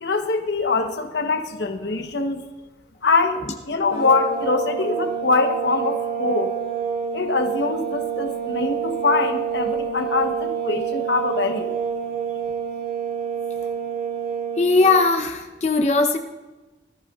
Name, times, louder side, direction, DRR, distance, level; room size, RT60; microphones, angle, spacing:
voice 1, 0.0-2.4 3.0-6.5 7.1-11.7, left 3 dB, 80° left, 5 dB, 1.0 m, -23 dB
sound 1, 3.9-14.9, right 7 dB, 30° right, 2.1 m, -27 dB
voice 2, 14.6-16.2, left 3 dB, 40° left, 4 dB, 0.7 m, -19 dB
19.0 x 14.0 x 2.4 m, 1.2 s
head